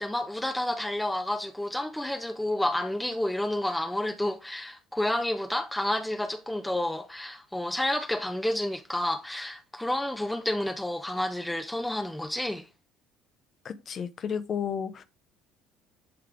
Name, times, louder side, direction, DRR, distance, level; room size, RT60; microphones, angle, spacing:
voice 1, 0.0-12.7, left 1 dB, 5° left, 0.7 m, -30 dB
voice 2, 13.6-15.0, left 7 dB, 40° left, 0.9 m, -32 dB
10.5 x 3.7 x 3.4 m
figure-of-eight pair, 60°, 0 cm